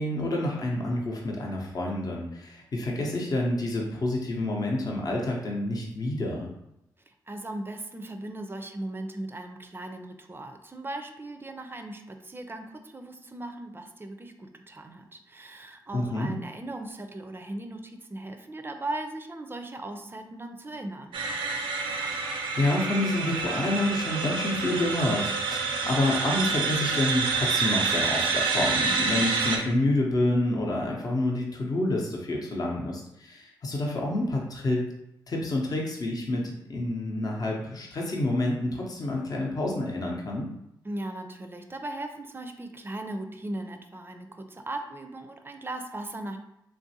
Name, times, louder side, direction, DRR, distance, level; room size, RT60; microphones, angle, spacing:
voice 1, 0.0-6.5 15.9-16.3 22.1-34.8 35.3-36.4 36.7-40.5, left 1 dB, 50° left, -1 dB, 0.7 m, -28 dB
voice 2, 7.1-21.2 40.8-46.4, right 1 dB, 25° right, 6 dB, 0.4 m, -38 dB
sound 1, 21.1-29.6, right 4 dB, 90° right, 0.4 m, -28 dB
3.2 x 2.5 x 2.7 m, 0.82 s
supercardioid pair, 50°, 8 cm